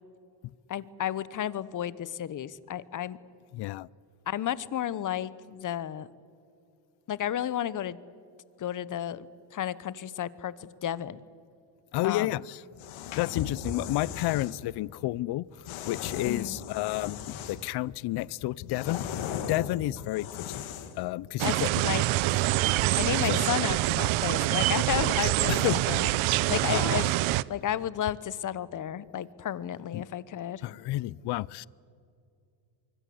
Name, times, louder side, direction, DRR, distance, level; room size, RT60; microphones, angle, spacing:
voice 1, 0.7-3.2 4.3-6.1 7.1-8.0 8.6-11.2 12.0-12.4 16.2-16.6 21.4-21.5 21.8-22.1 23.0-27.1 27.5-30.6, left 10 dB, 40° left, 18 dB, 1.0 m, -32 dB
voice 2, 3.5-3.9 11.9-12.6 13.1-19.0 19.5-20.7 21.0-21.7 23.2-23.4 25.5-25.8 26.7-27.1 29.9-30.0 30.6-31.7, left 17 dB, 55° left, 23 dB, 0.5 m, -31 dB
sound 1, 12.7-14.6 15.6-17.7 18.1-21.0, left 8 dB, 75° left, 2.2 m, -38 dB
sound 2, 21.4-27.4, right 18 dB, 75° right, 0.7 m, -25 dB
24.5 x 24.0 x 7.8 m, 2.4 s
cardioid pair, 135°, 48 cm